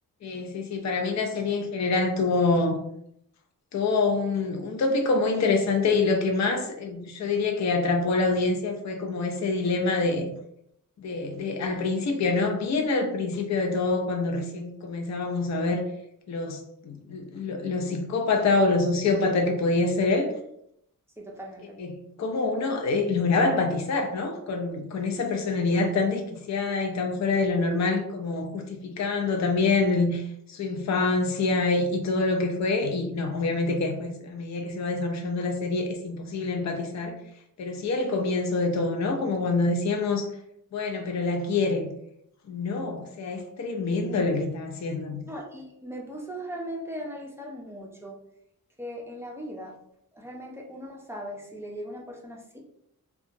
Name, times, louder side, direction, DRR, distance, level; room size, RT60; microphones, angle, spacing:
voice 1, 0.2-2.8 3.7-10.3 11.0-15.8 16.3-20.3 21.8-30.2 30.5-37.2 37.6-40.3 40.7-41.9 42.5-45.2, left 3 dB, 55° left, 0.5 m, -26 dB
voice 2, 21.2-21.8 45.3-48.2 48.8-49.7 50.1-52.6, equal, 5° right, 0.5 m, -39 dB
2.8 x 2.3 x 2.5 m
wide cardioid pair, 120°, 34 cm